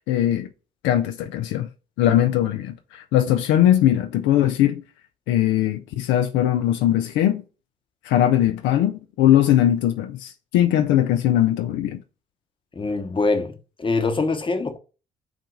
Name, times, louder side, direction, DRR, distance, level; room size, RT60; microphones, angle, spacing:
voice 1, 0.1-0.5 0.8-1.7 2.0-4.8 5.3-7.4 8.0-12.0, left 12 dB, 75° left, 0.5 m, -20 dB
voice 2, 12.8-14.8, left 3 dB, 25° left, 0.9 m, -24 dB
5.9 x 2.3 x 3.9 m
hypercardioid pair, 55°, 20 cm